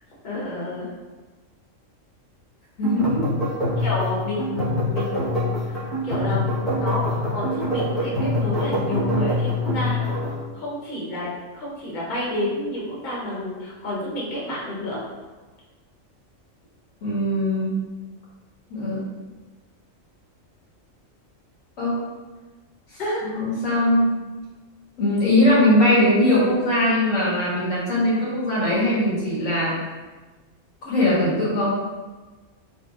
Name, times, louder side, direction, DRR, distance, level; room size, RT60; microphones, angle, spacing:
voice 1, 0.2-0.9 3.8-10.0 10.5-15.0 23.0-23.2, left 1 dB, 40° left, -7 dB, 1.0 m, -30 dB
voice 2, 2.8-3.3 17.0-17.8 18.7-19.0 21.8-22.0 22.9-24.2 25.0-29.8 30.8-31.8, left 1 dB, 85° left, -8 dB, 1.7 m, -20 dB
sound 1, 2.8-10.4, left 1 dB, ahead, 0.9 m, -25 dB
4.3 x 2.4 x 2.4 m, 1.3 s
omnidirectional pair, 1.3 m